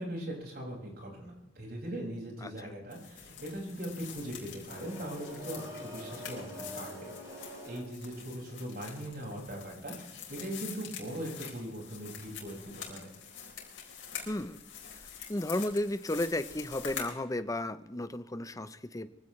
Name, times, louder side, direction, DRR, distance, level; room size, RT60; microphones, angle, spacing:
voice 1, 0.0-13.1, right 1 dB, 55° right, -1 dB, 6.0 m, -40 dB
sound 1, 2.9-17.1, left 8 dB, 70° left, 4.0 m, -46 dB
sound 2, 4.7-8.2, equal, 20° right, 5.3 m, -45 dB
voice 2, 14.3-14.6 14.9-15.0 15.3-19.1, left 1 dB, 20° left, 12 dB, 0.7 m, -34 dB
23.0 x 16.0 x 3.3 m, 0.96 s
head